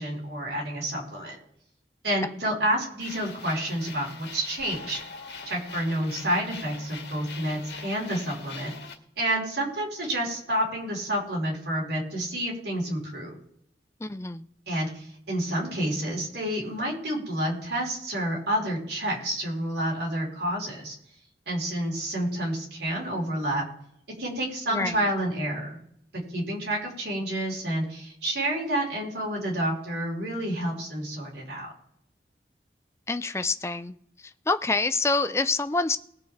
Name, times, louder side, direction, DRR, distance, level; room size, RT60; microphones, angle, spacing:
voice 1, 0.0-1.4 2.0-5.0 5.5-8.7 9.2-13.3 14.7-20.9 21.5-23.6 24.2-25.8 26.3-31.7, right 1 dB, 75° right, -3 dB, 4.7 m, -29 dB
sound 1, 3.0-8.9, left 4 dB, 75° left, 2.0 m, -42 dB
voice 2, 14.0-14.5 24.7-25.0 33.1-34.0 34.5-36.0, left 3 dB, 15° left, 12 dB, 0.4 m, -26 dB
20.0 x 6.8 x 3.5 m, 0.72 s
head